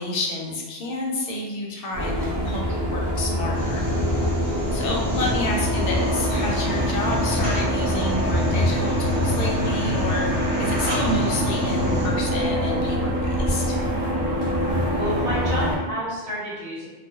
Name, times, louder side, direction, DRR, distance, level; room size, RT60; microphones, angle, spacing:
voice 1, 0.0-3.8 4.4-13.8, left 1 dB, 65° left, -1 dB, 0.7 m, -29 dB
sound 1, 1.9-15.8, equal, 30° right, 0.3 m, -24 dB
sound 2, 3.5-12.1, equal, 5° left, 0.7 m, -31 dB
sound 3, 3.9-9.6, right 1 dB, 90° right, 1.1 m, -38 dB
voice 2, 4.7-5.1 14.6-16.9, equal, 55° right, -7 dB, 1.0 m, -31 dB
2.3 x 2.0 x 2.7 m, 1.2 s
omnidirectional pair, 1.1 m